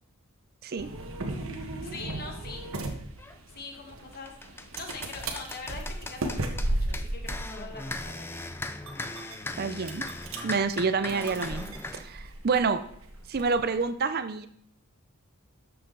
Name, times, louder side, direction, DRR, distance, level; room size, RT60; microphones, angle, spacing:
voice 1, 0.6-1.0 9.6-10.1 10.4-12.8 13.3-14.5, right 4 dB, 45° right, 11 dB, 0.5 m, -28 dB
sound 1, 0.8-13.9, right 1 dB, 65° right, 1.3 m, -36 dB
voice 2, 1.8-2.7 3.5-8.5, left 3 dB, 45° left, 3 dB, 1.6 m, -43 dB
sound 2, 3.2-3.4 3.9-12.1, left 2 dB, 10° left, 0.4 m, -39 dB
12.5 x 6.8 x 3.9 m, 0.66 s
head